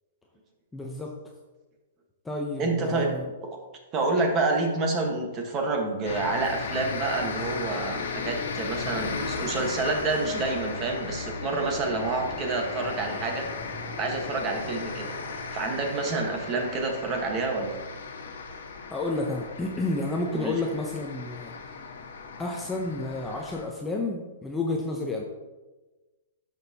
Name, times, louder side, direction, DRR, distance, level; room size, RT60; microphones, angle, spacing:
voice 1, 0.7-1.1 2.2-3.2 18.9-21.5 22.4-25.2, left 2 dB, 10° left, 0 dB, 0.7 m, -30 dB
voice 2, 2.6-3.1 3.4-3.6 3.9-13.5 14.0-15.2 15.5-17.8 20.3-20.5, right 3 dB, 25° right, 2 dB, 1.3 m, -28 dB
sound 1, 6.0-23.6, left 4 dB, 75° left, 1.4 m, -36 dB
12.0 x 6.2 x 2.9 m, 1.2 s
hypercardioid pair, 155°, 0 cm